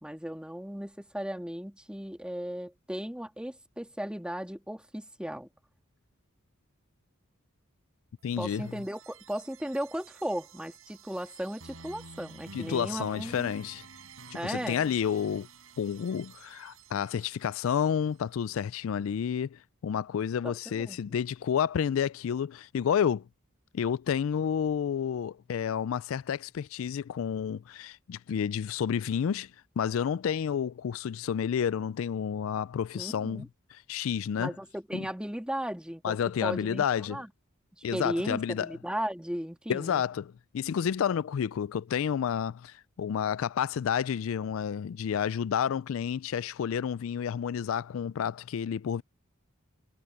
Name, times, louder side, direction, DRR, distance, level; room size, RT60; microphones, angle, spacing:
voice 1, 0.0-5.5 8.4-13.5 14.3-15.0 20.4-21.0 32.9-33.5 34.4-37.3 37.8-40.0, equal, 5° right, 1.9 m, -36 dB
voice 2, 8.2-8.7 12.5-13.8 14.4-15.5 15.8-23.2 23.7-29.5 29.8-33.4 33.7-34.5 34.9-35.1 36.0-37.2 37.8-38.7 39.7-49.0, left 8 dB, 75° left, 0.3 m, -30 dB
sound 1, 8.2-18.1, right 4 dB, 85° right, 6.8 m, -51 dB
head